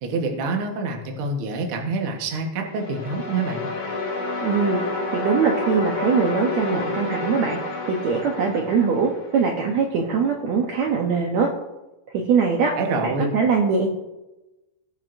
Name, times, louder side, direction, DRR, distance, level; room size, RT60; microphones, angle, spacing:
voice 1, 0.0-3.7 12.8-13.4, right 3 dB, 70° right, 2 dB, 1.2 m, -26 dB
sound 1, 2.7-9.7, left 2 dB, 45° left, 2.4 m, -29 dB
voice 2, 4.4-4.8 5.1-11.5 12.1-12.7 13.0-13.9, right 5 dB, 85° right, 1 dB, 1.5 m, -22 dB
19.5 x 7.5 x 2.6 m, 1.0 s
omnidirectional pair, 4.6 m